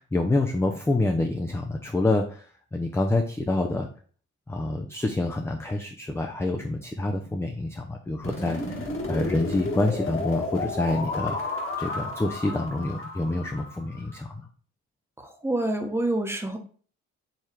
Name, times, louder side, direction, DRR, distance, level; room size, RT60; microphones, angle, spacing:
voice 1, 0.0-2.4 2.7-3.9 4.5-14.5, left 2 dB, 10° left, 3 dB, 0.5 m, -27 dB
sound 1, 8.2-14.2, left 3 dB, 45° left, 1.6 m, -32 dB
voice 2, 15.2-16.6, right 1 dB, 10° right, 4 dB, 1.0 m, -27 dB
4.7 x 3.1 x 3.4 m, 0.42 s
cardioid pair, 90°, 30 cm